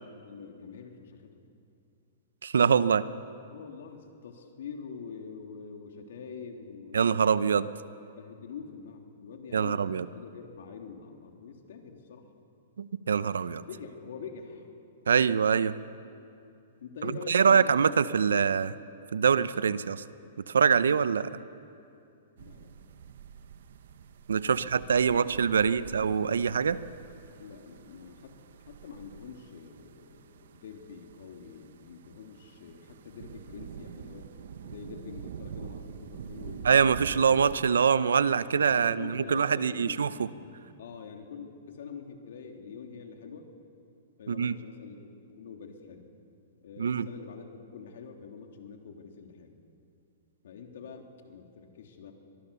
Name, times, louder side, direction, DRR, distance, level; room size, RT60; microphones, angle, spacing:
voice 1, 0.1-1.3 3.5-7.1 8.2-12.3 13.7-14.7 16.8-18.0 22.4-23.0 24.4-26.0 27.4-28.3 28.6-34.3 34.6-36.7 37.0-37.2 38.5-40.5 40.8-43.5 44.2-46.1 46.6-49.5 50.4-52.1, left 6 dB, 70° left, 3 dB, 3.2 m, -45 dB
voice 2, 2.4-3.0 6.9-7.7 9.5-10.0 12.8-13.6 15.1-15.8 17.3-18.7 19.1-20.0 20.5-21.3 24.3-26.8 36.6-40.3 44.3-44.5 46.8-47.1, right 6 dB, 90° right, 16 dB, 0.8 m, -24 dB
sound 1, 22.4-37.7, right 8 dB, 70° right, 1.1 m, -46 dB
24.5 x 19.5 x 7.0 m, 2.6 s
hypercardioid pair, 140°, 0 cm